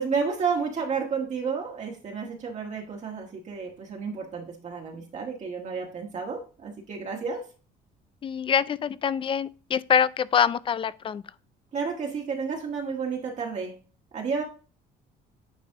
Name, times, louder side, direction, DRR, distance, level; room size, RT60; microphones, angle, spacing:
voice 1, 0.0-7.5 11.7-13.7 14.1-14.4, right 5 dB, 45° right, 1.5 m, -31 dB
voice 2, 8.2-11.2, left 7 dB, 30° left, 0.4 m, -25 dB
9.4 x 3.3 x 3.5 m
cardioid pair, 110°, 17 cm